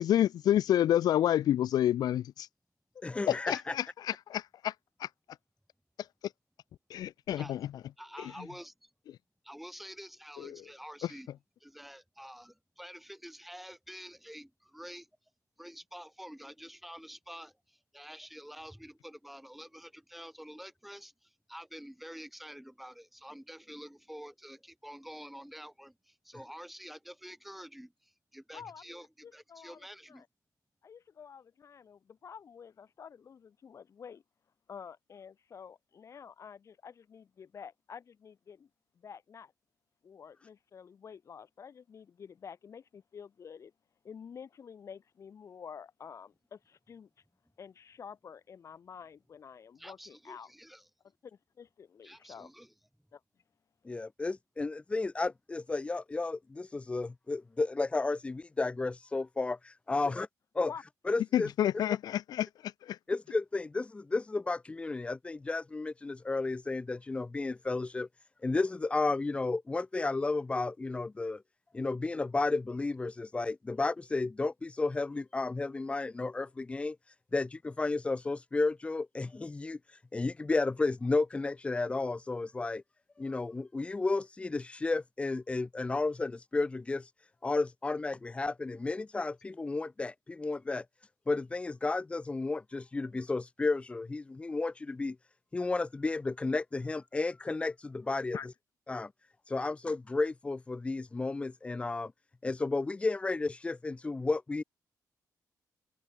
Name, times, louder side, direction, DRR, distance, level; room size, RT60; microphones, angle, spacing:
voice 1, 0.0-2.5 3.3-4.1 6.9-7.7 8.2-8.3 10.4-10.6 11.0-11.1 61.3-63.0, left 11 dB, 80° left, 1.0 m, -28 dB
voice 2, 3.0-3.7 53.8-60.3 60.6-60.7 61.1-61.5 63.1-68.1 68.4-71.4 71.7-82.8 83.2-87.1 87.4-90.9 91.3-95.2 95.5-98.4 98.9-99.1 99.5-102.1 102.4-104.6, left 3 dB, 15° left, 0.5 m, -32 dB
voice 3, 8.0-8.9 9.4-11.3 11.6-15.1 15.6-29.1 29.3-30.2 49.8-50.8 52.0-52.7, equal, ahead, 7.1 m, -48 dB
voice 4, 28.5-30.3 30.8-34.2 34.7-38.7 39.0-39.5 40.0-43.7 44.0-47.1 47.6-50.5 51.2-52.5 53.1-53.2 60.0-60.1 60.6-60.8 98.3-98.5, left 7 dB, 45° left, 2.7 m, -49 dB
cardioid pair, 120°, 7 cm